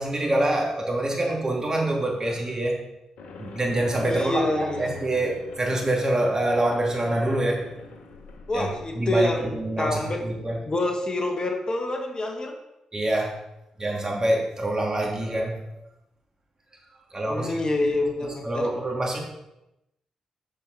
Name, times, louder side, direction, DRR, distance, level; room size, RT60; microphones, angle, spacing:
voice 1, 0.0-2.8 3.4-7.7 8.5-8.7 9.0-10.6 12.9-13.4 13.8-15.6 16.9-17.6 18.2-19.2, right 1 dB, 30° right, -1 dB, 2.6 m, -26 dB
sound 1, 3.2-9.2, left 4 dB, 70° left, 1.0 m, -44 dB
voice 2, 4.0-4.9 8.5-10.2 10.7-12.6 17.2-18.7, left 2 dB, 40° left, 3 dB, 1.5 m, -27 dB
7.7 x 6.9 x 4.1 m, 0.89 s
hypercardioid pair, 40°, 2 cm